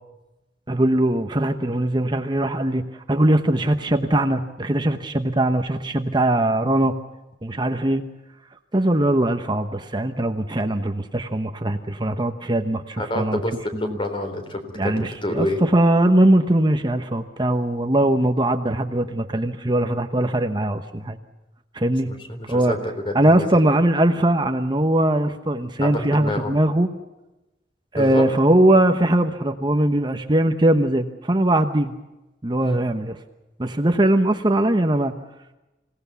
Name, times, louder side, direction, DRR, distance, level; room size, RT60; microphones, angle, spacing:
voice 1, 0.7-7.0 7.4-8.0 8.7-13.4 13.7-14.0 14.7-21.2 21.7-22.1 22.5-22.8 23.1-26.9 27.9-31.9 32.4-33.2 33.6-35.1, right 1 dB, 25° right, 7 dB, 1.1 m, -20 dB
voice 2, 13.0-15.6 22.1-23.5 25.8-26.5 27.9-28.3 32.6-32.8, left 1 dB, 30° left, 6 dB, 3.9 m, -28 dB
26.5 x 18.0 x 7.0 m, 1.0 s
head